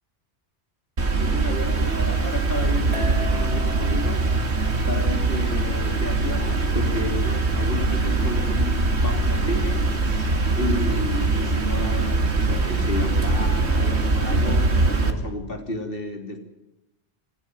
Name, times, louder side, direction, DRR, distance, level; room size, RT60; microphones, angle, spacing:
sound 1, 1.0-15.1, right 3 dB, 80° right, 2.3 m, -22 dB
voice 1, 1.2-4.4 4.9-16.4, left 1 dB, 55° left, 3.3 m, -32 dB
sound 2, 2.9-6.1, right 1 dB, 90° left, 4.9 m, -39 dB
26.5 x 15.5 x 9.3 m
omnidirectional pair, 1.1 m